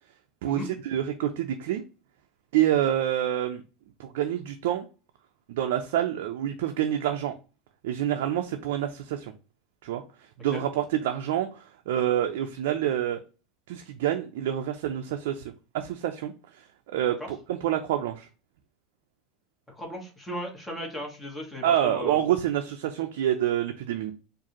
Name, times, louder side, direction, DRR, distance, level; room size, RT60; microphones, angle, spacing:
voice 1, 0.4-1.8 2.5-3.6 4.0-4.9 5.5-7.3 7.8-9.3 9.8-10.0 10.4-13.2 13.7-16.3 16.9-18.3 21.6-24.1, right 11 dB, 75° right, 5 dB, 0.4 m, -27 dB
voice 2, 19.7-22.2, equal, 10° left, 0 dB, 1.5 m, -36 dB
4.7 x 2.6 x 2.9 m, 0.33 s
supercardioid pair, 110°, 0 cm